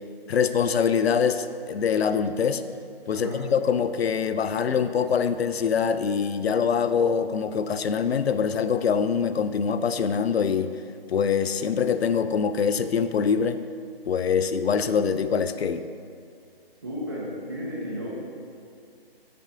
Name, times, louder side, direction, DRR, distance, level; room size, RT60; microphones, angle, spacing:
voice 1, 0.3-2.6 3.1-10.7 11.1-13.6 14.1-15.8, left 6 dB, 85° left, 11 dB, 0.5 m, -24 dB
voice 2, 16.8-18.1, equal, 25° right, -5 dB, 1.0 m, -33 dB
6.9 x 5.6 x 3.7 m, 2.2 s
hypercardioid pair, 175°, 30 cm